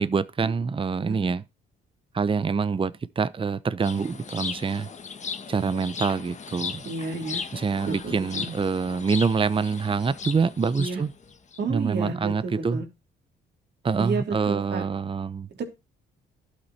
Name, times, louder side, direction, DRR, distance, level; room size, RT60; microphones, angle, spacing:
voice 1, 0.0-1.4 2.1-4.9 5.5-6.8 7.5-11.1 11.7-12.8 13.8-15.5, right 5 dB, 25° right, 0.8 m, -26 dB
sound 1, 3.8-11.6, left 6 dB, 35° left, 1.4 m, -37 dB
voice 2, 6.8-7.4 7.9-8.5 10.8-11.0 11.6-12.9 14.0-14.9 15.5-15.7, right 4 dB, 60° right, 3.4 m, -31 dB
12.0 x 8.3 x 4.3 m
cardioid pair, 90°, 20 cm